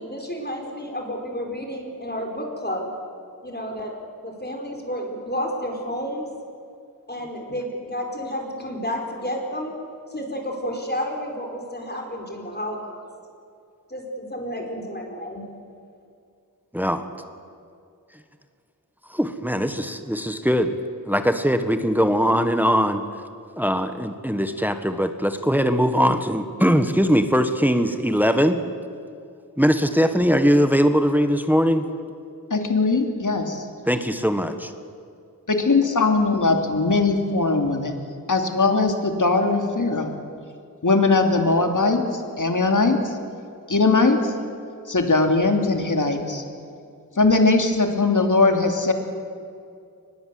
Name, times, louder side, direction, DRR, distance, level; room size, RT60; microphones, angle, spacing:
voice 1, 0.0-2.9 3.4-3.9 4.2-6.3 7.1-9.7 10.1-13.0 13.9-15.4, equal, 30° left, 1 dB, 4.7 m, -31 dB
voice 2, 19.1-20.8 21.1-23.0 23.6-28.6 29.6-31.9 33.9-34.7, equal, 5° right, 8 dB, 1.4 m, -21 dB
voice 3, 32.5-33.6 35.5-38.0 38.3-40.1 40.8-43.1 43.7-44.3 44.9-46.4 47.2-48.9, left 3 dB, 60° left, 4 dB, 2.8 m, -20 dB
24.0 x 20.5 x 7.8 m, 2.4 s
wide cardioid pair, 60°, 35 cm